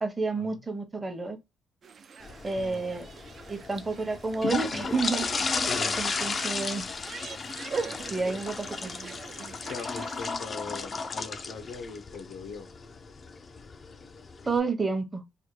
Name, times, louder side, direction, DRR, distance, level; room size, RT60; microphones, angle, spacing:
voice 1, 0.0-1.4 2.4-3.1 3.5-5.4 6.0-6.9 8.1-9.0 14.4-15.2, right 4 dB, 25° right, 0.8 m, -30 dB
sound 1, 1.8-10.2, right 5 dB, 50° right, 0.4 m, -42 dB
sound 2, 2.2-14.6, left 4 dB, 40° left, 0.4 m, -34 dB
voice 2, 2.6-2.9 5.6-6.0 9.6-12.7, left 4 dB, 90° left, 0.8 m, -41 dB
3.3 x 2.2 x 3.0 m
cardioid pair, 90°, 0 cm